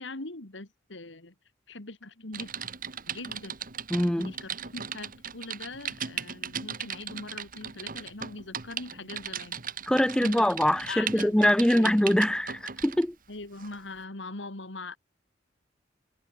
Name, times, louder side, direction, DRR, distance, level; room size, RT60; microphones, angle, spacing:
voice 1, 0.0-1.3 1.7-2.7 3.1-3.6 4.2-9.6 10.2-10.5 10.9-12.2 13.3-15.0, left 3 dB, 75° left, 2.4 m, -41 dB
Typing, 2.3-13.0 13.6-13.8, right 7 dB, 50° right, 2.5 m, -38 dB
voice 2, 3.9-4.3 9.9-13.2, left 1 dB, 5° left, 0.4 m, -23 dB
head